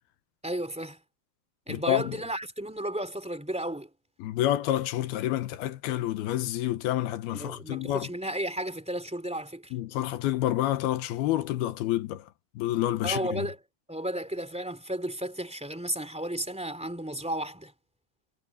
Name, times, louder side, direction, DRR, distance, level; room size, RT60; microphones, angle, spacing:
voice 1, 0.4-1.0 1.7-3.9 7.3-9.7 13.0-13.6 13.9-17.7, right 1 dB, ahead, 2.4 m, -33 dB
voice 2, 1.7-2.2 4.2-8.1 9.7-12.3 12.6-13.5, left 13 dB, 70° left, 2.8 m, -28 dB
omnidirectional pair, 4.8 m